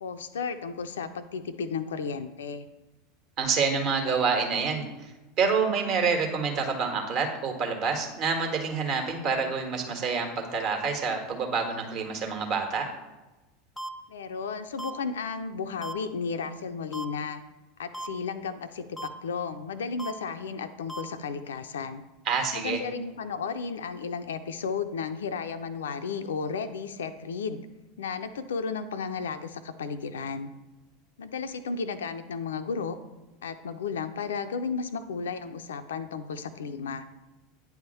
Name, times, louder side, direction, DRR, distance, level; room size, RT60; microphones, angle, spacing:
voice 1, 0.0-2.7 14.1-17.4 17.8-22.0 22.5-27.6 28.0-30.5 31.2-33.0 33.4-37.1, left 5 dB, 70° left, 10 dB, 0.4 m, -33 dB
voice 2, 3.4-4.8 5.4-12.9 22.2-22.8, right 5 dB, 45° right, 3 dB, 1.5 m, -27 dB
sound 1, 13.8-13.9 14.8-14.9 15.8-15.9 16.9-17.1 17.9-18.1 19.0-19.1 20.0-20.1 20.9-21.0, right 1 dB, 10° left, 0.5 m, -36 dB
9.2 x 3.5 x 6.8 m, 1.1 s
figure-of-eight pair, 80°, 0 cm